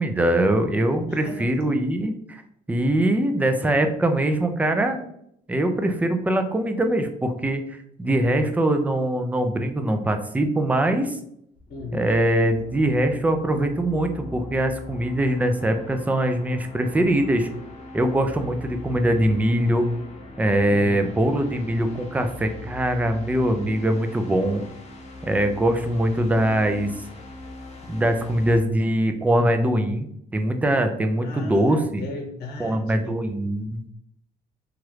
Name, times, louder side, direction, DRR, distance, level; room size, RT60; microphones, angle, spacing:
voice 1, 0.0-2.4 2.7-5.0 5.5-11.2 11.9-17.5 17.9-19.9 20.4-24.6 25.2-26.9 27.9-30.1 30.3-32.0 32.6-33.8, right 1 dB, 10° right, 6 dB, 0.3 m, -22 dB
voice 2, 1.1-1.5 11.7-12.3 20.7-21.1 31.2-33.2, left 2 dB, 70° left, 0 dB, 1.0 m, -36 dB
sound 1, 11.6-28.6, left 2 dB, 40° left, 0.8 m, -41 dB
3.0 x 2.4 x 3.1 m, 0.73 s
cardioid pair, 110°, 17 cm